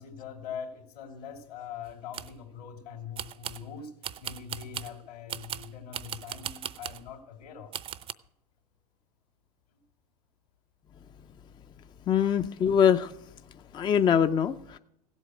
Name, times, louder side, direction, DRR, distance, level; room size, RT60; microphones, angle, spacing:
voice 1, 0.0-3.9 4.2-7.7 9.7-9.8, left 7 dB, 70° left, 4 dB, 2.9 m, -42 dB
sound 1, 1.9-2.4 3.2-3.7 4.0-5.0 5.3-7.1 7.7-8.1, right 10 dB, 25° right, 0.6 m, -38 dB
voice 2, 12.1-13.1 13.7-14.8, left 8 dB, 20° left, 10 dB, 0.5 m, -23 dB
16.5 x 8.1 x 6.4 m, 0.78 s
hypercardioid pair, 90°, 21 cm